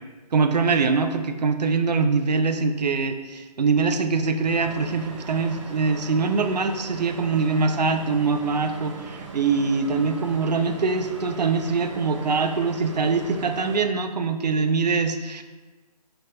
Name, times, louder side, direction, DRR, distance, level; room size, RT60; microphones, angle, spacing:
voice 1, 0.3-15.4, right 4 dB, 90° right, 7 dB, 0.5 m, -23 dB
sound 1, 4.4-13.8, right 2 dB, 50° right, 0.7 m, -40 dB
4.5 x 3.9 x 2.5 m, 1.3 s
hypercardioid pair, 155°, 21 cm